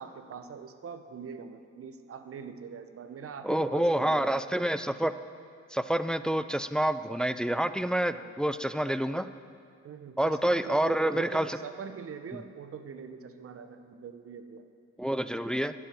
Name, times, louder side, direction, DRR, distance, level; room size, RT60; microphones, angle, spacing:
voice 1, 0.0-4.3 8.1-8.3 9.8-14.6, right 6 dB, 50° right, 9 dB, 0.9 m, -43 dB
voice 2, 3.4-5.1 5.7-9.3 10.2-11.6 15.0-15.7, right 1 dB, 5° left, 13 dB, 0.3 m, -28 dB
11.5 x 7.4 x 8.8 m, 2.3 s
cardioid pair, 90°, 30 cm